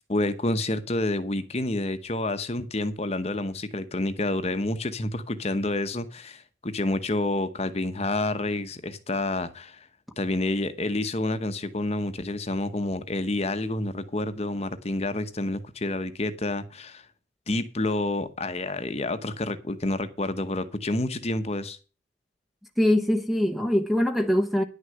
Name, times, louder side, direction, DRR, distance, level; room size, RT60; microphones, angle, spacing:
voice 1, 0.1-9.9 10.2-17.1 17.5-21.8, left 2 dB, 30° left, 0.9 m, -29 dB
voice 2, 22.8-24.6, left 1 dB, ahead, 0.8 m, -23 dB
10.5 x 6.4 x 7.7 m
head